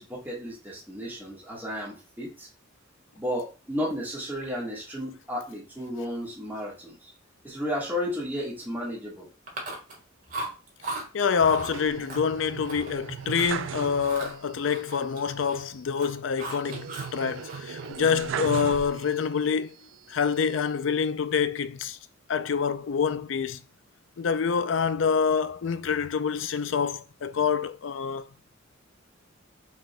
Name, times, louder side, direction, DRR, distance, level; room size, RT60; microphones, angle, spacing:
voice 1, 0.0-2.5 3.1-7.1 7.4-9.3, equal, 10° right, 1.6 m, -33 dB
Chewing mastication, 9.5-10.0 10.3-11.0 11.4-11.7 12.1-12.9 13.2-13.6 14.0-15.6 15.9-17.1 17.4-18.8, right 2 dB, 45° right, 1.6 m, -37 dB
voice 2, 11.1-19.7 20.1-22.0 22.3-23.6 24.2-28.3, left 6 dB, 65° left, 0.4 m, -26 dB
sound 1, 11.4-14.5 14.8-14.9 16.7-19.4 19.9-20.8, right 7 dB, 65° right, 0.3 m, -37 dB
6.2 x 3.6 x 2.2 m
head